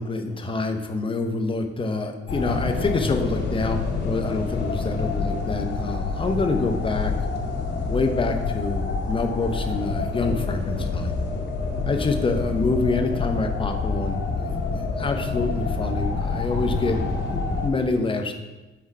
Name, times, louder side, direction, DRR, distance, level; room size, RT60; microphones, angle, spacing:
voice 1, 0.0-7.2 7.9-11.1 11.8-17.0 17.3-18.3, left 3 dB, 25° left, 5 dB, 0.7 m, -26 dB
sound 1, 2.3-17.7, left 3 dB, 60° left, 1.0 m, -27 dB
4.7 x 3.7 x 5.4 m, 1.1 s
cardioid pair, 90°, 20 cm